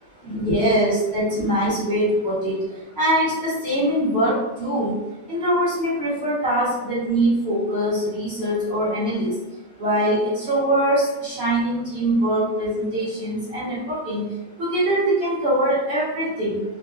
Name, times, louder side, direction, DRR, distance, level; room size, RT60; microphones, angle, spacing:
voice 1, 0.2-5.0 5.3-9.3 9.8-16.6, right 1 dB, 50° right, -12 dB, 1.0 m, -23 dB
3.0 x 2.3 x 2.2 m, 1.1 s
omnidirectional pair, 1.6 m